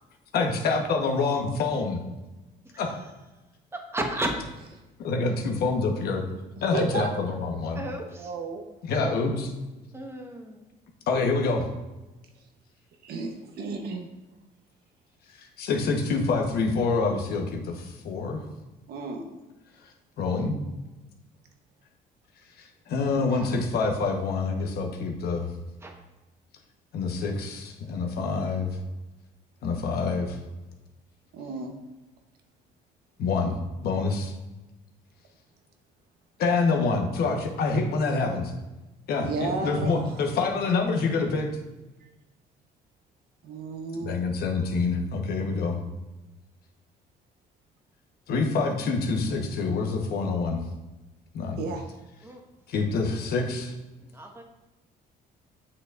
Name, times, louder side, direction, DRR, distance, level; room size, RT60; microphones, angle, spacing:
voice 1, 0.3-2.0 2.8-3.0 5.0-6.2 6.6-7.8 8.8-9.5 11.1-11.7 15.3-18.4 20.2-20.6 22.6-25.5 26.9-28.7 29.6-30.4 33.2-33.6 33.8-34.3 36.4-38.5 39.1-41.6 44.0-45.8 48.3-50.6 51.3-51.6 52.7-53.7, left 4 dB, 65° left, 2 dB, 1.2 m, -26 dB
voice 2, 3.7-4.3 7.7-8.3 9.9-10.5 25.8-25.9 52.2-52.4 54.0-54.4, right 1 dB, 15° right, 2 dB, 1.1 m, -33 dB
voice 3, 6.6-7.1 8.2-8.6 13.0-14.1 18.9-19.3 23.3-23.5 31.3-31.7 39.2-40.2 43.5-44.2 51.6-51.9, right 4 dB, 70° right, 4 dB, 1.0 m, -33 dB
7.5 x 6.6 x 2.5 m, 1.1 s
cardioid pair, 110°, 17 cm